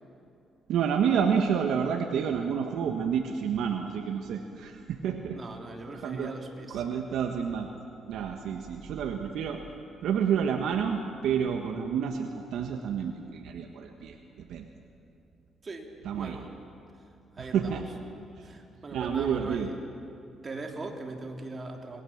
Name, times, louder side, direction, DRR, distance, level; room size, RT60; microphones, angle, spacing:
voice 1, 0.7-5.4 6.0-6.3 6.7-7.7 8.1-9.6 10.0-14.7 16.0-16.4 17.4-17.9 18.4-18.5 18.9-19.7, right 7 dB, 80° right, 3 dB, 1.5 m, -29 dB
voice 2, 5.3-6.8 15.6-16.5 17.3-17.8 18.4-19.7 20.4-22.0, right 2 dB, 35° right, 2 dB, 3.3 m, -40 dB
27.0 x 21.0 x 7.4 m, 2.6 s
cardioid pair, 90°, 0 cm